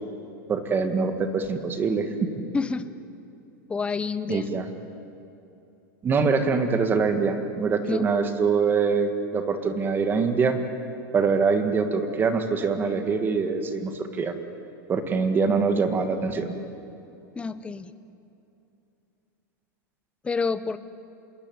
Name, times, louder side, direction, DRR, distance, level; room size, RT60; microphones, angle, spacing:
voice 1, 0.5-2.1 4.3-4.6 6.0-10.6 11.1-14.3 14.9-16.5, right 5 dB, 20° right, 8 dB, 1.7 m, -24 dB
voice 2, 2.5-2.9 3.7-4.5 7.8-8.1 17.4-17.9 20.2-20.8, left 4 dB, 10° left, 13 dB, 0.7 m, -28 dB
26.5 x 21.0 x 9.5 m, 2.8 s
supercardioid pair, 155°, 11 cm